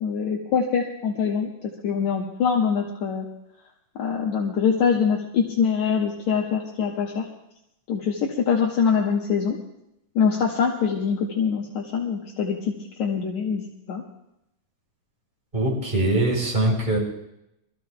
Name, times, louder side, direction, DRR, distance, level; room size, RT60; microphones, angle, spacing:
voice 1, 0.0-3.3 4.0-7.2 7.9-9.6 10.2-12.7 13.0-14.0, left 6 dB, 65° left, -2 dB, 2.3 m, -24 dB
voice 2, 15.5-17.0, right 2 dB, 15° right, -1 dB, 3.7 m, -22 dB
25.5 x 14.5 x 2.3 m, 0.83 s
omnidirectional pair, 3.8 m